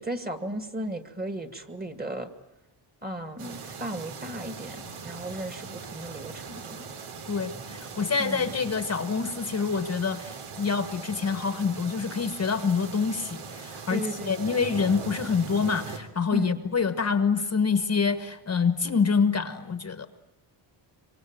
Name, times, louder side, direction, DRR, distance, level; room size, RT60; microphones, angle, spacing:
voice 1, 0.0-2.3 3.0-6.8 8.2-8.5 13.9-14.3 16.3-16.6, right 1 dB, 20° right, 8 dB, 2.1 m, -35 dB
sound 1, 3.4-16.0, right 5 dB, 85° right, 3.2 m, -40 dB
voice 2, 7.3-20.1, left 5 dB, 30° left, 10 dB, 1.2 m, -26 dB
25.0 x 24.5 x 9.1 m, 0.88 s
cardioid pair, 145°, 49 cm